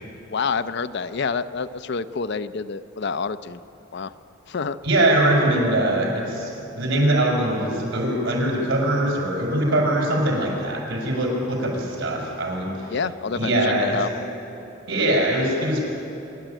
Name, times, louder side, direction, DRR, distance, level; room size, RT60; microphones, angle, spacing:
voice 1, 0.3-3.6 3.9-4.1 4.5-4.8 12.9-14.1, left 5 dB, 60° left, 13 dB, 0.6 m, -28 dB
voice 2, 4.8-6.5 6.7-12.9 13.3-14.0 14.9-15.9, right 1 dB, 80° right, -1 dB, 5.6 m, -22 dB
25.0 x 12.0 x 9.0 m, 2.9 s
head